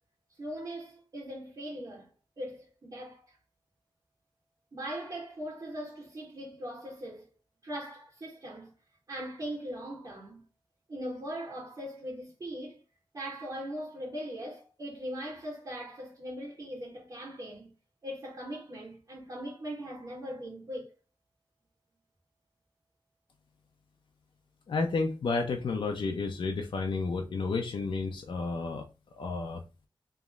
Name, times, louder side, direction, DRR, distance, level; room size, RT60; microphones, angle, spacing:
voice 1, 0.4-2.1 2.4-3.4 4.7-7.3 7.6-8.7 9.1-10.4 10.9-12.8 13.1-17.7 18.0-20.9, equal, 45° right, 1.6 m, -40 dB
voice 2, 24.7-28.8 29.1-29.6, left 3 dB, 75° left, 0.6 m, -31 dB
3.5 x 3.1 x 3.6 m
wide cardioid pair, 135°, 9 cm